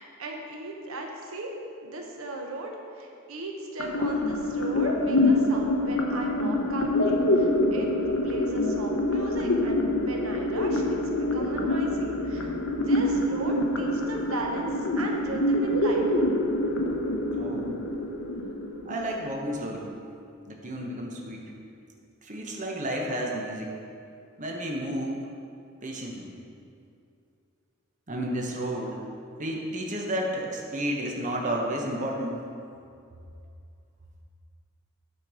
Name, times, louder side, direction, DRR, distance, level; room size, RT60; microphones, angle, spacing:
voice 1, 0.0-1.5 1.8-7.9 8.2-16.1, right 2 dB, 80° right, 1 dB, 0.8 m, -37 dB
sound 1, 3.8-19.8, left 1 dB, 65° left, 0.7 m, -26 dB
voice 2, 17.4-17.8 18.9-19.9 20.5-21.5 22.2-23.8 24.4-25.3 25.8-26.3 28.1-29.0 29.4-32.4, right 1 dB, 35° right, -1 dB, 0.9 m, -31 dB
9.0 x 4.5 x 4.8 m, 2.5 s
head